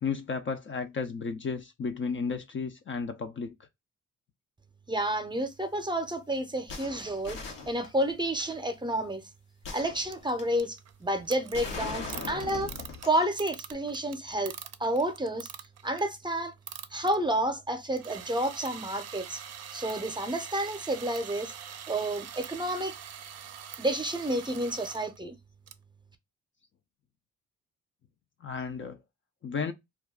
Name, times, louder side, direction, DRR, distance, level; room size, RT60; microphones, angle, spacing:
voice 1, 0.0-3.5 28.4-29.0 29.4-29.7, left 5 dB, 35° left, 0.5 m, -33 dB
voice 2, 4.9-9.2 9.7-12.7 13.1-14.5 14.8-15.5 15.8-16.5 16.9-19.4 19.7-21.5 21.9-23.0 23.8-25.4, right 1 dB, 15° right, 0.7 m, -30 dB
sound 1, 6.7-8.3 9.6-10.6 11.5-13.3 13.7-13.8, left 4 dB, 75° left, 0.9 m, -40 dB
sound 2, 10.1-16.2 16.5-17.2 17.9-25.2 25.7-25.8, right 9 dB, 50° right, 0.5 m, -44 dB
2.4 x 2.2 x 3.6 m
hypercardioid pair, 45°, 33 cm